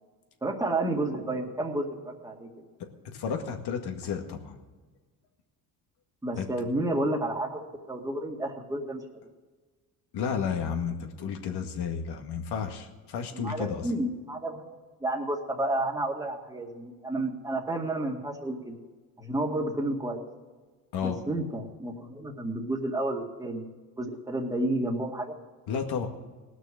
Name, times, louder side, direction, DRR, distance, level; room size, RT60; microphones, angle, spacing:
voice 1, 0.4-2.5 6.2-9.0 13.3-14.6 15.0-18.8 19.2-20.2 21.0-23.7 24.0-25.4, right 1 dB, 10° right, 1 dB, 2.0 m, -31 dB
voice 2, 2.8-4.6 6.4-6.5 10.1-13.9 20.9-21.2 25.7-26.1, left 6 dB, 70° left, 4 dB, 2.0 m, -32 dB
18.0 x 6.3 x 7.7 m, 1.3 s
supercardioid pair, 80°, 42 cm